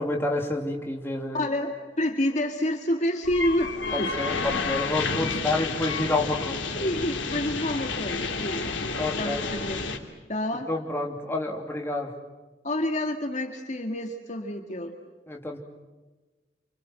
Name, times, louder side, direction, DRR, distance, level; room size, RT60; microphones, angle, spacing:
voice 1, 0.0-1.4 3.9-6.7 9.0-9.4 10.7-12.1 15.3-15.6, left 2 dB, 15° left, 1 dB, 2.7 m, -29 dB
voice 2, 1.3-4.4 5.2-5.5 6.7-9.8 10.3-10.7 12.6-14.9, left 1 dB, 40° left, 4 dB, 2.0 m, -29 dB
sound 1, 3.2-10.0, left 4 dB, 85° left, 2.9 m, -30 dB
29.0 x 25.5 x 7.7 m, 1.2 s
head